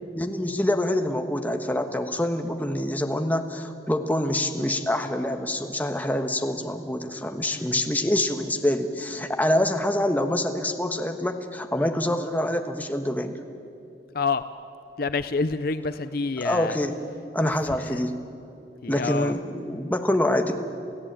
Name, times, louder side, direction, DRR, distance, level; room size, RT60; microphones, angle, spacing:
voice 1, 0.1-13.4 16.4-17.0 17.3-18.2 18.9-20.6, left 1 dB, 10° left, 5 dB, 1.3 m, -26 dB
voice 2, 7.5-7.8 14.1-14.4 15.0-16.8 17.4-18.0 18.8-19.4, left 4 dB, 55° left, 12 dB, 0.6 m, -28 dB
28.5 x 16.0 x 8.9 m, 2.7 s
head